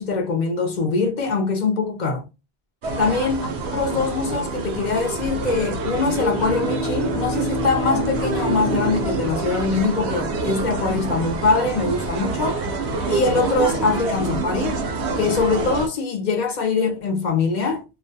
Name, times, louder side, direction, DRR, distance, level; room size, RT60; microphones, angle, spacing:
voice 1, 0.0-2.2 3.0-12.6 13.1-14.8 15.2-17.8, left 4 dB, 55° left, 0.5 m, -23 dB
sound 1, 2.8-15.9, right 3 dB, 80° right, 0.9 m, -27 dB
Bowed string instrument, 5.9-10.5, equal, 55° right, 0.4 m, -29 dB
2.4 x 2.2 x 2.6 m
omnidirectional pair, 1.1 m